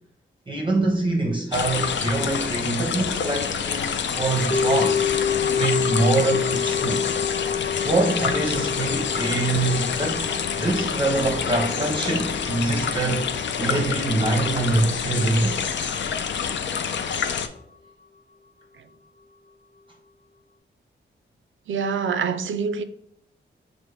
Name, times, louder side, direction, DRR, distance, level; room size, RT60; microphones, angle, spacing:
voice 1, 0.5-3.9 4.2-5.0 5.6-7.1 7.8-10.3 10.6-15.6, right 2 dB, 25° right, 0.7 m, -24 dB
sound 1, 1.5-17.5, left 7 dB, 65° left, 0.4 m, -27 dB
sound 2, 4.5-14.8 15.0-15.1, left 7 dB, 25° left, 0.8 m, -29 dB
voice 2, 21.7-22.8, right 6 dB, 70° right, 0.4 m, -26 dB
6.0 x 2.1 x 3.2 m
cardioid pair, 75°, 21 cm